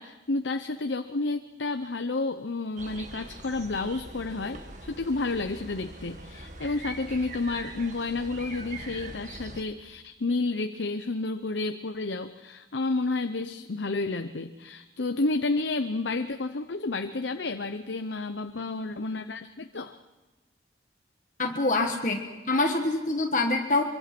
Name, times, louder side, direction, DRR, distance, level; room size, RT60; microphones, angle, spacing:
voice 1, 0.0-20.0, left 3 dB, 85° left, 8 dB, 0.9 m, -31 dB
sound 1, 2.8-9.6, right 2 dB, 40° right, 1.8 m, -42 dB
voice 2, 21.4-22.2 22.5-23.8, left 2 dB, 45° left, 2 dB, 1.5 m, -25 dB
24.5 x 24.0 x 6.1 m, 1.2 s
head